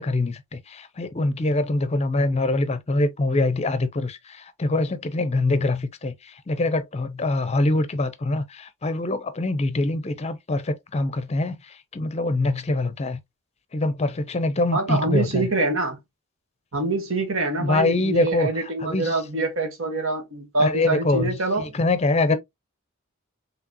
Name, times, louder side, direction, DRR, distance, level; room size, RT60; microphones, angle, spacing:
voice 1, 0.0-13.2 13.7-15.5 17.6-18.5 18.8-19.1 20.6-22.4, left 2 dB, 30° left, 0.6 m, -24 dB
voice 2, 14.7-16.0 16.7-21.7 22.3-22.4, right 2 dB, 70° right, 1.5 m, -25 dB
4.8 x 3.3 x 2.8 m
head